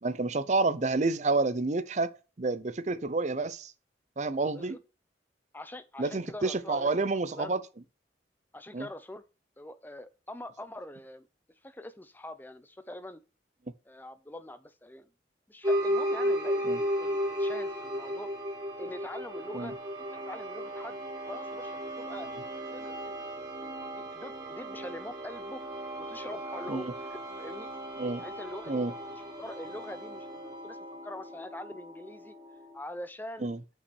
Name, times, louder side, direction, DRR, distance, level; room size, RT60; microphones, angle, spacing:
voice 1, 0.0-2.1 2.4-3.7 4.2-4.8 6.0-7.6 8.7-8.9 16.6-16.8 19.5-19.7 26.7-26.9 28.0-28.3 28.7-28.9 33.4-33.6, right 3 dB, 40° right, 0.6 m, -29 dB
voice 2, 5.5-6.9 7.3-7.5 8.5-9.2 9.6-11.3 11.6-13.2 13.8-15.1 15.5-18.3 18.8-19.7 20.1-21.0 21.3-22.3 22.7-23.1 23.6-25.6 26.0-27.7 28.2-30.8 31.0-32.3 32.7-33.5, left 1 dB, 10° left, 0.6 m, -44 dB
sound 1, 15.6-32.8, equal, 20° right, 2.0 m, -35 dB
5.8 x 5.7 x 6.2 m
head